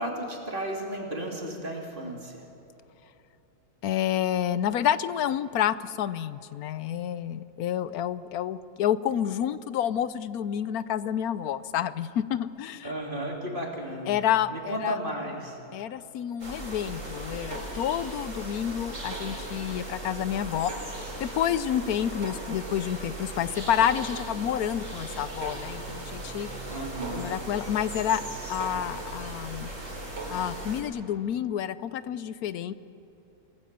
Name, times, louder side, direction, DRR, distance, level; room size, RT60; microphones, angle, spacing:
voice 1, 0.0-2.4 12.8-14.2 14.5-15.6 26.7-27.3, right 1 dB, 35° right, -1 dB, 3.1 m, -34 dB
voice 2, 3.8-12.9 14.1-15.0 15.7-20.7 21.2-26.5 27.1-28.2 28.5-29.7 30.3-32.7, left 10 dB, 75° left, 15 dB, 1.2 m, -29 dB
sound 1, 16.4-30.8, right 1 dB, 55° right, 4.2 m, -37 dB
28.5 x 18.5 x 6.8 m, 2.9 s
omnidirectional pair, 1.6 m